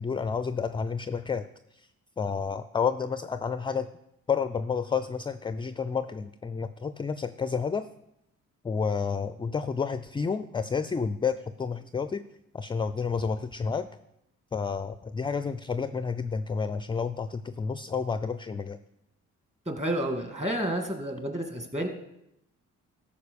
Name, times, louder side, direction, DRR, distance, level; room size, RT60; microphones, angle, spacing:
voice 1, 0.0-1.5 1.7-1.9 2.2-3.9 4.3-7.9 8.6-12.2 12.5-13.9 14.5-18.8, left 5 dB, 15° left, 12 dB, 0.4 m, -30 dB
voice 2, 19.7-21.9, right 1 dB, 20° right, 4 dB, 2.2 m, -30 dB
13.5 x 5.1 x 6.9 m, 0.82 s
cardioid pair, 90°, 30 cm